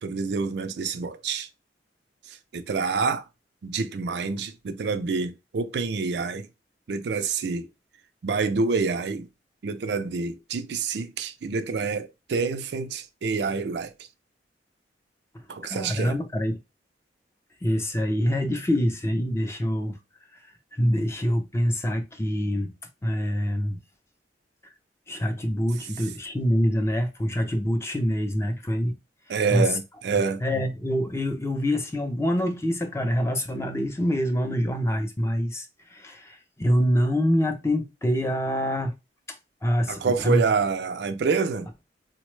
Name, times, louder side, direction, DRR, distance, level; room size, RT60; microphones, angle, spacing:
voice 1, 0.0-1.5 2.3-3.2 3.6-6.5 6.9-7.7 8.2-9.3 9.6-13.9 15.5-16.2 29.3-30.4 39.9-41.7, right 4 dB, 65° right, 0.4 m, -27 dB
voice 2, 15.6-16.6 17.6-20.0 20.8-22.7 23.0-23.8 25.1-29.0 29.5-29.7 30.4-35.6 35.9-38.9 39.6-40.4, equal, 15° left, 0.5 m, -25 dB
3.8 x 2.1 x 3.1 m
head